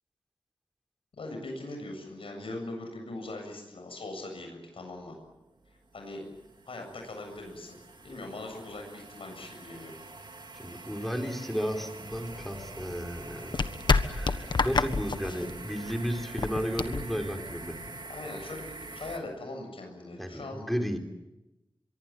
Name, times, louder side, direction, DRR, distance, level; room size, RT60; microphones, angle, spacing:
voice 1, 1.2-5.2 5.9-6.2 6.6-7.8 8.0-9.9 13.3-13.4 18.1-20.6, left 2 dB, 85° left, 3 dB, 7.6 m, -40 dB
sound 1, 5.3-19.2, right 3 dB, 55° right, 2.9 m, -46 dB
voice 2, 10.5-13.7 14.0-17.8 20.2-21.0, equal, ahead, 4 dB, 4.1 m, -33 dB
sound 2, 12.1-18.0, left 4 dB, 55° left, 1.4 m, -30 dB
24.5 x 23.5 x 8.9 m, 0.97 s
wide cardioid pair, 100°, 9 cm